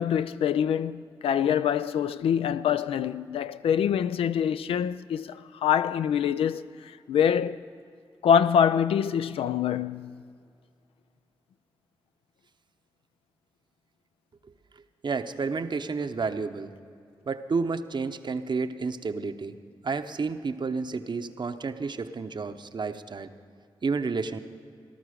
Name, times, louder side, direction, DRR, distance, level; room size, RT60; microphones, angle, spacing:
voice 1, 0.0-7.6 8.2-10.1, left 8 dB, 85° left, 0.4 m, -25 dB
voice 2, 15.0-16.7 17.3-19.6 19.8-23.3 23.8-24.4, right 4 dB, 55° right, 0.8 m, -30 dB
18.0 x 12.5 x 5.0 m
supercardioid pair, 45°, 9 cm